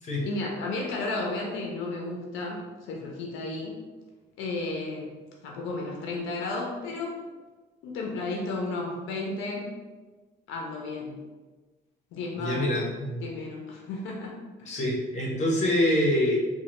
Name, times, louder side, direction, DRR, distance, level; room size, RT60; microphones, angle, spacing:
voice 1, 0.2-3.8 4.4-5.1 5.4-7.2 7.8-9.7 10.5-11.2 12.1-12.6 13.2-14.3 14.6-14.8, left 2 dB, 85° left, -1 dB, 0.5 m, -33 dB
voice 2, 12.3-13.2 14.6-16.4, left 1 dB, 35° left, -3 dB, 0.9 m, -25 dB
3.1 x 2.2 x 2.9 m, 1.3 s
cardioid pair, 140°, 19 cm